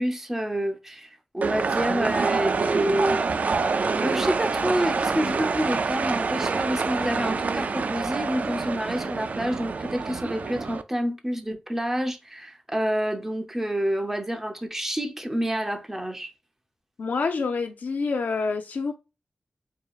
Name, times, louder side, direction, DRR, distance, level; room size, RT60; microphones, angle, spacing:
voice 1, 0.0-3.3 4.0-16.3, equal, 10° right, 0.6 m, -28 dB
sound 1, 1.4-10.8, right 4 dB, 60° right, 0.3 m, -26 dB
voice 2, 17.0-18.9, left 4 dB, 75° left, 0.4 m, -27 dB
4.7 x 2.7 x 2.4 m
wide cardioid pair, 120°, 3 cm